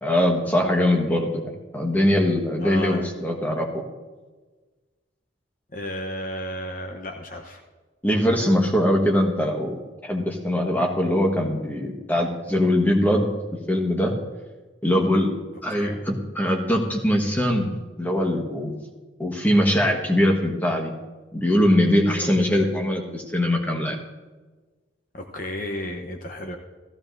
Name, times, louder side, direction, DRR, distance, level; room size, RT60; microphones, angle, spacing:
voice 1, 0.0-3.8 8.0-9.7 10.0-13.3 13.7-14.1 14.8-15.3 15.6-18.7 19.2-20.9 21.3-24.0, left 1 dB, 10° left, 0 dB, 1.4 m, -22 dB
voice 2, 2.6-3.1 5.7-7.6 15.7-16.0 22.2-22.3 22.6-22.7 25.1-26.6, left 1 dB, 45° left, 3 dB, 0.9 m, -33 dB
15.5 x 14.5 x 2.6 m, 1.3 s
head